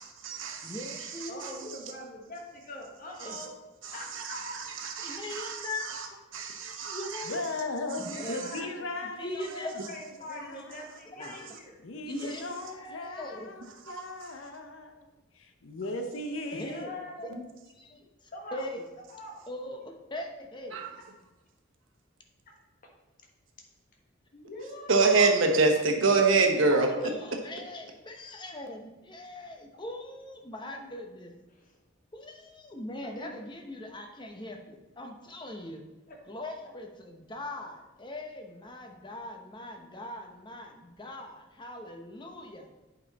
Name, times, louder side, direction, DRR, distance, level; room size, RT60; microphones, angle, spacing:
voice 1, 0.0-1.8 3.2-3.5 3.8-6.1 6.3-7.5 7.9-8.5 11.3-11.5 13.9-14.5 17.3-17.4 20.7-20.9 24.9-27.1, right 3 dB, 70° right, 3 dB, 1.1 m, -27 dB
voice 2, 0.6-1.7 3.2-3.4 5.0-5.9 6.6-7.4 8.0-8.7 9.2-9.9 11.1-11.5 12.1-13.5 16.5-17.0 17.8-18.8 19.5-21.0 24.6-24.8 27.2-31.3 32.1-35.8 36.3-42.7, left 1 dB, 25° left, 3 dB, 0.8 m, -41 dB
voice 3, 1.3-3.5 3.9-4.6 7.9-11.8 16.6-17.4 18.3-18.6 19.1-19.4 22.5-22.6 24.3-25.1 31.5-31.8 33.2-33.3 36.1-36.2, left 1 dB, 40° left, 0 dB, 1.4 m, -43 dB
voice 4, 7.2-9.8 10.3-10.8 11.8-16.9, left 2 dB, 70° left, 6 dB, 0.7 m, -38 dB
8.3 x 5.3 x 4.1 m, 1.1 s
head